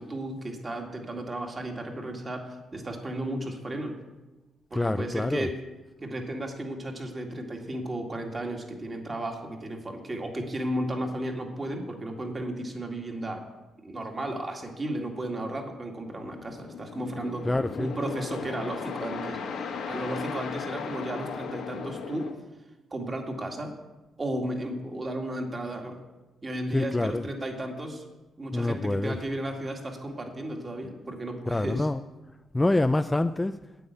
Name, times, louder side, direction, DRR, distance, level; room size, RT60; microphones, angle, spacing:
voice 1, 0.0-4.0 4.7-5.5 6.0-13.4 13.8-17.5 17.8-22.3 22.9-23.7 24.2-26.0 26.4-28.1 28.4-31.9, right 1 dB, 30° right, 2 dB, 2.2 m, -34 dB
voice 2, 4.7-5.5 17.4-17.9 26.7-27.3 28.5-29.2 31.5-32.1 32.5-33.6, left 2 dB, 15° left, 9 dB, 0.3 m, -26 dB
sound 1, 16.1-22.3, left 5 dB, 80° left, 1.5 m, -36 dB
9.3 x 8.6 x 8.3 m, 1.1 s
cardioid pair, 100°, 0 cm